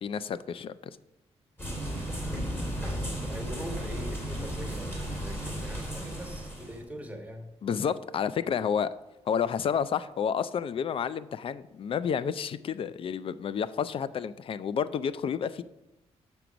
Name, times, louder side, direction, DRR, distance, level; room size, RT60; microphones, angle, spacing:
voice 1, 0.0-1.0 7.6-8.9 9.3-15.6, left 7 dB, 50° left, 15 dB, 0.4 m, -30 dB
sound 1, 1.6-6.8, equal, 20° left, 2.8 m, -34 dB
voice 2, 2.0-7.5, equal, 10° right, 3 dB, 1.4 m, -43 dB
6.9 x 6.1 x 5.1 m, 0.93 s
cardioid pair, 90°, 12 cm